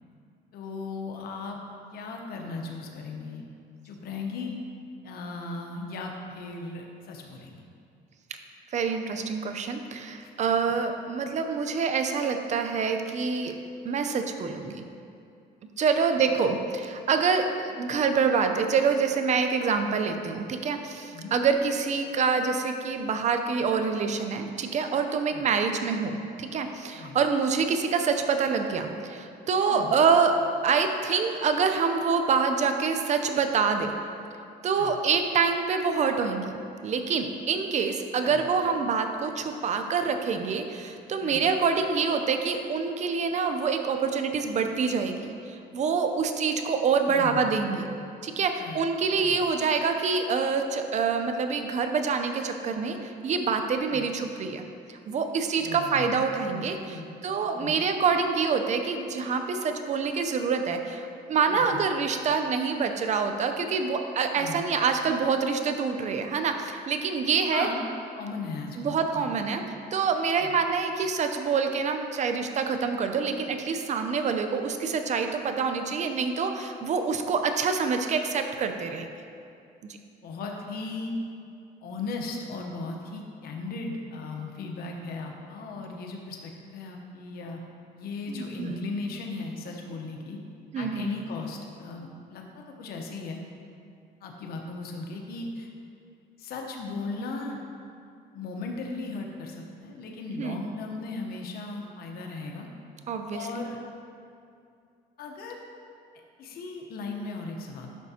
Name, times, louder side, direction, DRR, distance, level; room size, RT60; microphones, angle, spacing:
voice 1, 0.5-1.6 1.9-3.4 3.8-4.6 5.0-7.6 10.2-10.3 15.8-16.3 21.1-21.3 25.3-25.5 26.9-27.2 29.7-30.0 34.8-34.9 38.2-38.4 41.2-41.5 47.1-47.6 48.6-48.8 49.2-49.4 53.9-54.1 55.6-56.2 56.5-57.1 57.5-57.8 61.5-61.9 64.3-64.7 67.5-67.8 68.2-69.3 70.4-70.6 80.2-81.1 81.8-87.6 87.9-90.4 90.8-93.4 94.2-95.7 96.4-97.6 98.3-102.7 103.3-103.8 105.2-105.6 106.4-107.9, left 3 dB, 65° left, 1 dB, 0.9 m, -37 dB
voice 2, 8.7-13.5 13.8-14.8 15.8-30.3 30.6-33.9 34.6-36.4 36.8-47.9 48.2-54.6 54.9-67.7 68.8-69.6 69.9-79.1 88.3-88.8 90.7-91.1 100.4-100.7 103.1-103.5, right 5 dB, 45° right, 6 dB, 0.6 m, -26 dB
10.5 x 5.8 x 2.8 m, 2.4 s
cardioid pair, 110°, 17 cm